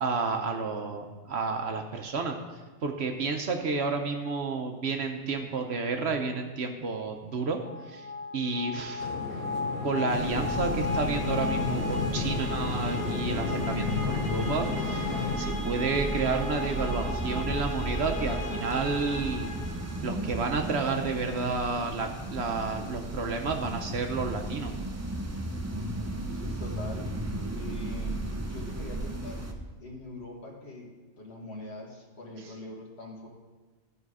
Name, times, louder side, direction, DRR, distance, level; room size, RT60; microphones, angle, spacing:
voice 1, 0.0-2.4 2.8-7.6 7.9-8.1 8.3-9.1 9.8-19.5 20.0-24.7, right 4 dB, 60° right, 4 dB, 0.9 m, -31 dB
sound 1, 7.5-20.3, left 2 dB, 85° left, 2.1 m, -36 dB
sound 2, 9.0-15.4, left 4 dB, 70° left, 1.3 m, -32 dB
sound 3, 10.1-29.5, right 2 dB, 20° right, 0.4 m, -35 dB
voice 2, 25.7-27.1 27.5-29.4 29.8-33.3, left 2 dB, 55° left, -1 dB, 1.7 m, -42 dB
13.0 x 4.9 x 4.8 m, 1.3 s
omnidirectional pair, 1.3 m